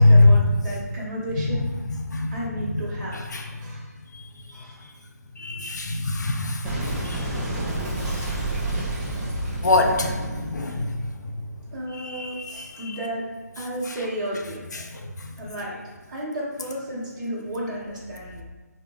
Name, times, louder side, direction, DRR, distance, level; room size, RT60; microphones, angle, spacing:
voice 1, 0.0-1.6 2.3-3.9 4.5-4.9 11.7-12.4 12.8-13.3 13.6-14.6 15.4-15.8 16.1-18.4, right 1 dB, 30° right, -8 dB, 0.8 m, -33 dB
voice 2, 5.4-7.3 9.6-10.9 11.2-11.3 12.1-12.8 14.8-15.0, left 2 dB, 80° left, 3 dB, 0.5 m, -22 dB
Boom, 6.6-11.9, right 1 dB, 10° right, 0.3 m, -30 dB
3.7 x 2.0 x 3.4 m, 1.2 s
figure-of-eight pair, 155°, 9 cm